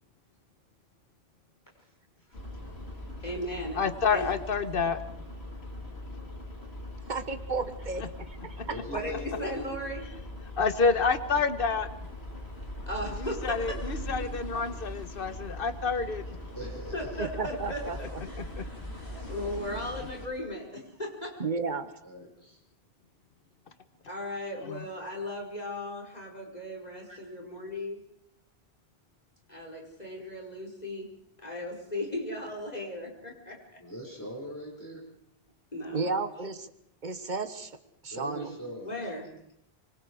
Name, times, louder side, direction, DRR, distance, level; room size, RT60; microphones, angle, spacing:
voice 1, 1.7-2.4 8.6-9.6 16.5-17.2 19.1-19.3 22.0-22.6 27.1-27.2 33.8-35.1 38.1-39.0, equal, 20° left, -3 dB, 5.8 m, -42 dB
sound 1, 2.3-20.3, left 1 dB, 85° left, 4.8 m, -41 dB
voice 2, 3.2-3.8 4.1-4.3 8.9-10.1 12.8-13.8 16.9-18.4 19.0-21.4 24.1-28.0 29.5-31.1 31.4-33.8 35.7-36.0 38.8-39.3, left 1 dB, 40° left, 0 dB, 5.4 m, -37 dB
voice 3, 3.7-5.0 10.6-11.9 13.2-16.2 18.6-18.7 24.6-24.8, left 5 dB, 60° left, 11 dB, 1.5 m, -28 dB
voice 4, 7.1-8.4 8.7-8.8 17.2-18.2 21.4-22.0 35.9-36.7 37.0-37.8 38.0-38.6, right 4 dB, 45° right, 10 dB, 1.6 m, -33 dB
25.0 x 24.5 x 4.9 m, 0.74 s
omnidirectional pair, 1.1 m